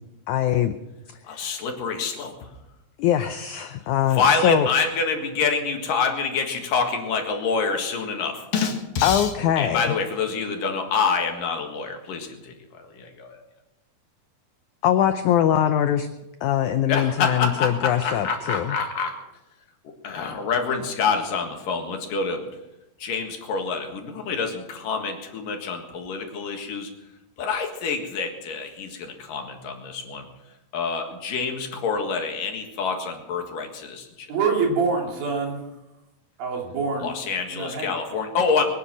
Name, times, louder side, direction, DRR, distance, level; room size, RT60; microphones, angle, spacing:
voice 1, 0.3-0.8 1.3-1.4 3.0-4.7 9.0-10.0 14.8-16.1 16.4-18.8, left 10 dB, 85° left, 9 dB, 1.7 m, -22 dB
voice 2, 1.3-2.3 4.1-9.3 9.6-12.5 12.9-13.4 16.9-19.2 20.0-22.4 23.0-26.9 27.4-30.3 30.7-34.3 37.0-38.6, left 5 dB, 65° left, 3 dB, 3.3 m, -26 dB
voice 3, 34.3-35.6 36.4-37.1 37.5-37.9, right 4 dB, 70° right, 0 dB, 4.7 m, -25 dB
22.5 x 9.7 x 6.1 m, 0.96 s
omnidirectional pair, 4.4 m